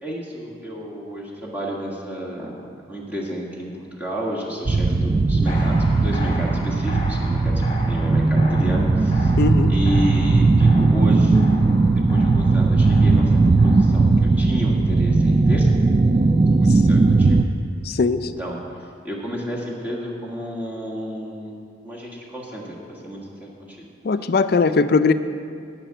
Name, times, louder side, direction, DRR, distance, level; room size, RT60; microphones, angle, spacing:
voice 1, 0.0-9.3 9.7-11.5 12.1-15.7 16.5-17.5 18.4-18.6 19.0-21.6 21.8-23.8, equal, 10° right, -5 dB, 1.6 m, -31 dB
sound 1, 4.6-17.4, right 3 dB, 30° right, 0.3 m, -18 dB
sound 2, 5.5-14.1, left 1 dB, 25° left, 1.4 m, -37 dB
voice 2, 9.4-9.7 17.8-18.3 24.0-25.1, left 4 dB, 55° left, 11 dB, 0.4 m, -19 dB
11.0 x 5.8 x 9.0 m, 2.3 s
head